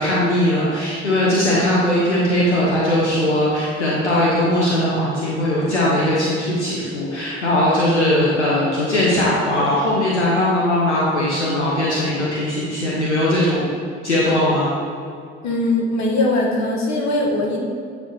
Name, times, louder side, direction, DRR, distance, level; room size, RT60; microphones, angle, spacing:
voice 1, 0.0-13.7 14.0-14.7, left 1 dB, 90° left, -6 dB, 0.7 m, -19 dB
voice 2, 15.4-17.6, left 2 dB, 55° left, -1 dB, 1.4 m, -20 dB
9.1 x 3.3 x 4.0 m, 2.3 s
figure-of-eight pair, 50°, 34 cm